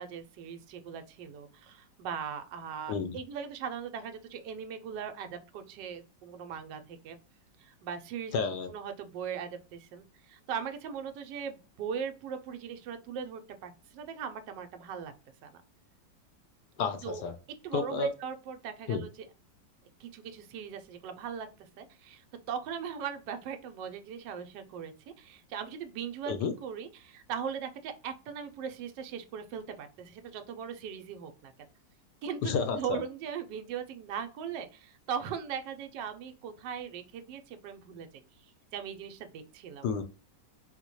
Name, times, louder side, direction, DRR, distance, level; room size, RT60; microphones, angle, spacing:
voice 1, 0.0-7.2 7.6-8.4 8.7-15.1 15.4-15.6 17.0-17.2 17.6-19.3 20.0-31.5 32.2-38.2 38.7-39.9, right 7 dB, 80° right, 7 dB, 1.2 m, -39 dB
voice 2, 8.3-8.7 16.8-17.3 17.7-18.1 18.9-19.0 26.3-26.5 32.4-33.0 39.8-40.0, left 5 dB, 75° left, 8 dB, 1.1 m, -31 dB
3.9 x 2.1 x 3.0 m, 0.33 s
omnidirectional pair, 1.9 m